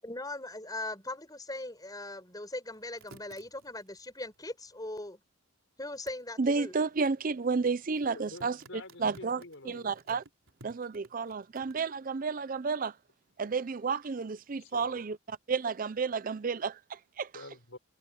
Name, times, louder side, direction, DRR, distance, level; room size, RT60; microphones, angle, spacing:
voice 1, 0.0-5.2 5.8-6.7, left 2 dB, 20° left, 6.3 m, -40 dB
sound 1, 2.7-5.1 5.9-6.2 7.9-11.7, right 2 dB, 75° right, 4.0 m, -57 dB
voice 2, 6.4-8.6 9.0-10.2 10.6-13.0 13.4-17.3, right 4 dB, 40° right, 0.5 m, -31 dB
voice 3, 8.1-9.9 14.6-15.0 17.3-17.8, left 2 dB, 70° left, 5.1 m, -48 dB
head